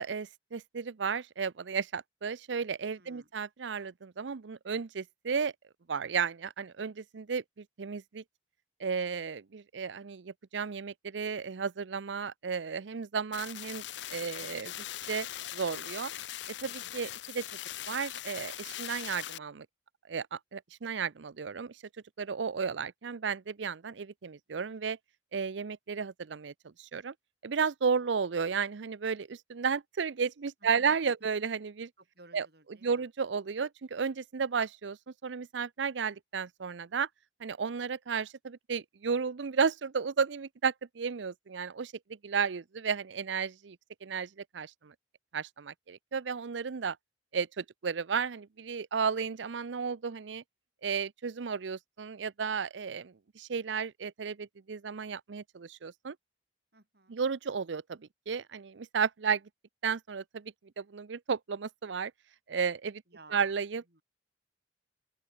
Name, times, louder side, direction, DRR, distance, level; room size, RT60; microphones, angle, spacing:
voice 1, 0.0-5.5 5.9-8.2 8.8-14.7 15.1-15.3 15.5-16.1 16.6-17.4 17.9-19.7 20.1-21.8 22.2-25.0 25.3-27.1 27.4-31.9 32.3-32.5 32.8-37.1 37.4-41.9 42.2-44.9 45.3-47.0 47.3-50.4 50.8-56.2 57.1-59.5 59.8-62.1 62.5-63.0 63.3-63.8, right 6 dB, 85° right, 0.6 m, -33 dB
voice 2, 2.9-3.3 16.6-17.0 30.6-31.3 32.0-33.1 56.7-57.2 63.1-63.6 63.9-64.0, right 2 dB, 60° right, 7.2 m, -57 dB
sound 1, 13.3-19.4, left 12 dB, 75° left, 0.6 m, -41 dB
open air
head